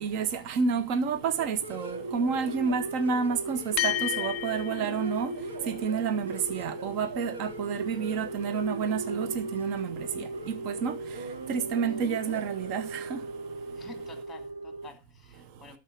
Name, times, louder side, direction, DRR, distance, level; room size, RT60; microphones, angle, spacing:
voice 1, 0.0-5.3 5.7-10.9 11.5-13.2, right 6 dB, 40° right, 1.0 m, -30 dB
sound 1, 1.1-14.9, right 3 dB, 85° right, 2.5 m, -38 dB
sound 2, 3.8-12.4, left 12 dB, 35° left, 0.8 m, -38 dB
voice 2, 13.7-15.8, left 4 dB, 5° left, 2.6 m, -51 dB
12.5 x 4.7 x 7.3 m
hypercardioid pair, 135°, 0 cm